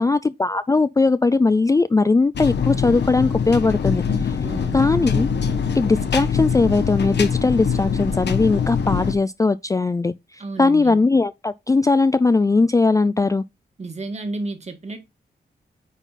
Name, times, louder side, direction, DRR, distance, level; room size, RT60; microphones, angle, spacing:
voice 1, 0.0-4.3 4.7-5.3 5.8-10.1 10.6-13.4, left 3 dB, 20° left, 0.3 m, -19 dB
sound 1, 2.3-9.1, left 6 dB, 85° left, 1.0 m, -23 dB
voice 2, 4.4-4.9 10.4-11.0 13.8-15.0, right 3 dB, 40° right, 1.8 m, -32 dB
9.1 x 3.9 x 4.1 m
wide cardioid pair, 105°, 17 cm